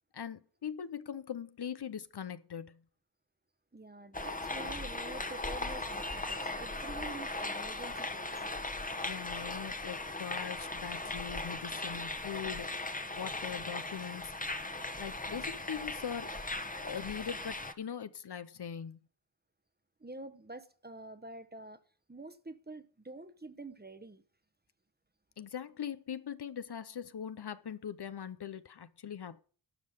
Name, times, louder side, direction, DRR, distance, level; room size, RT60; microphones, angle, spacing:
voice 1, 0.1-2.8 9.0-12.9 13.1-14.3 15.0-16.4 16.8-19.0 25.4-29.4, left 8 dB, 60° left, 0.7 m, -41 dB
voice 2, 3.7-8.3 20.0-21.8 22.1-24.2, right 2 dB, 20° right, 1.0 m, -47 dB
sound 1, 4.1-17.7, left 2 dB, 20° left, 1.1 m, -38 dB
12.0 x 5.7 x 8.9 m
wide cardioid pair, 75°, 44 cm